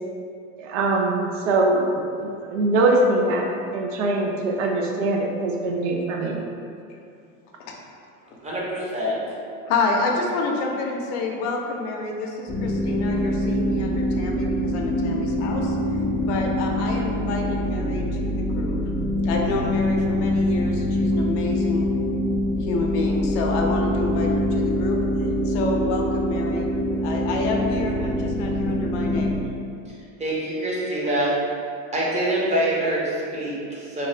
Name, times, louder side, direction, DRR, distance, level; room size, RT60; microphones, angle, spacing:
voice 1, 0.6-3.5 3.7-6.4, right 2 dB, 75° right, 0 dB, 0.6 m, -22 dB
voice 2, 8.4-9.2 30.2-31.3 31.9-34.1, right 1 dB, 20° right, -6 dB, 0.8 m, -25 dB
voice 3, 9.7-18.8 19.2-21.9 22.5-26.7 27.0-29.4, left 3 dB, 65° left, 0 dB, 0.6 m, -28 dB
sound 1, 12.5-29.3, left 1 dB, ahead, 0.3 m, -24 dB
2.5 x 2.4 x 3.1 m, 2.5 s
hypercardioid pair, 100°, 37 cm